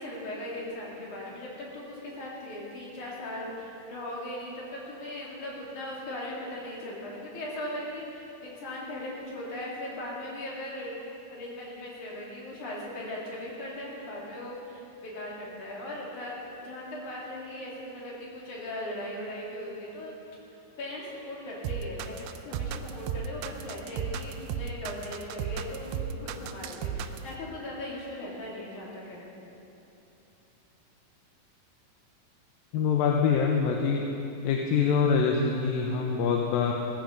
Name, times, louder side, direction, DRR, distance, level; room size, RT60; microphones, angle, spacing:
voice 1, 0.0-11.0 11.3-16.3 16.6-20.1 20.8-29.3, left 1 dB, 55° left, -4 dB, 4.1 m, -38 dB
sound 1, 21.6-27.3, right 8 dB, 80° right, 2.2 m, -34 dB
voice 2, 32.7-34.1 34.4-36.7, left 6 dB, 75° left, 1 dB, 2.5 m, -25 dB
17.0 x 14.5 x 5.2 m, 2.9 s
omnidirectional pair, 4.3 m